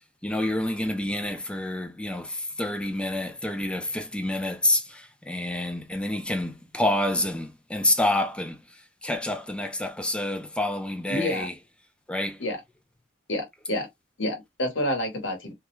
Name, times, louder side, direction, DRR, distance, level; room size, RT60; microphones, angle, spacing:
voice 1, 0.2-8.6 9.0-11.5 12.1-12.4, left 1 dB, 5° left, 0.3 m, -28 dB
voice 2, 11.1-11.5 12.4-12.6 13.3-13.9 14.2-15.5, left 1 dB, 80° left, 1.0 m, -28 dB
2.3 x 2.0 x 3.0 m
head